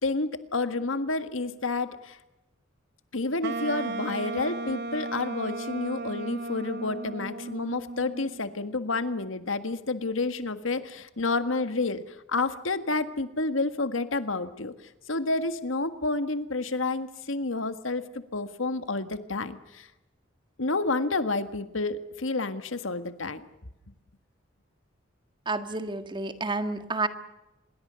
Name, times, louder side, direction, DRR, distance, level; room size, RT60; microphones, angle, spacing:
voice 1, 0.0-2.2 3.1-14.7 15.1-19.9 20.6-23.5, left 3 dB, 80° left, 11 dB, 1.7 m, -30 dB
Wind instrument woodwind instrument, 3.4-8.4, right 2 dB, 55° right, 1.2 m, -35 dB
voice 2, 25.4-27.1, right 3 dB, 25° right, 9 dB, 1.7 m, -30 dB
26.5 x 22.0 x 6.9 m, 0.94 s
head